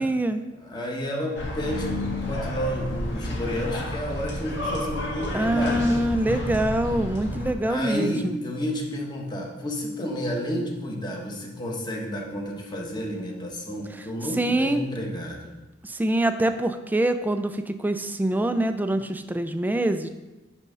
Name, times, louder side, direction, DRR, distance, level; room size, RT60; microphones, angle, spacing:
voice 1, 0.0-0.4 5.3-8.4 14.4-14.8 15.8-20.1, right 1 dB, 10° right, 9 dB, 0.4 m, -24 dB
voice 2, 0.6-6.1 7.7-15.5, equal, 25° left, 0 dB, 1.2 m, -31 dB
sound 1, 1.4-7.5, left 1 dB, 65° left, 1.7 m, -30 dB
9.5 x 3.6 x 5.5 m, 1.1 s
head